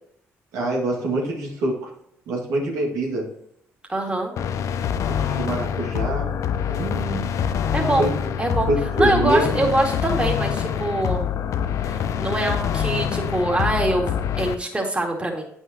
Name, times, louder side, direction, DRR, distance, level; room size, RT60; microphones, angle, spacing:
voice 1, 0.5-1.9 2.3-3.3 5.2-6.3 6.7-7.3 8.0-8.3 8.7-9.7, right 1 dB, 80° right, -2 dB, 1.9 m, -25 dB
voice 2, 3.9-4.3 7.7-8.1 8.4-8.7 9.0-11.3 11.9-15.4, right 1 dB, 20° right, 0 dB, 2.3 m, -24 dB
sound 1, 4.4-14.5, left 8 dB, 65° left, 0.5 m, -25 dB
8.9 x 5.6 x 2.9 m, 0.71 s
supercardioid pair, 60°, 6 cm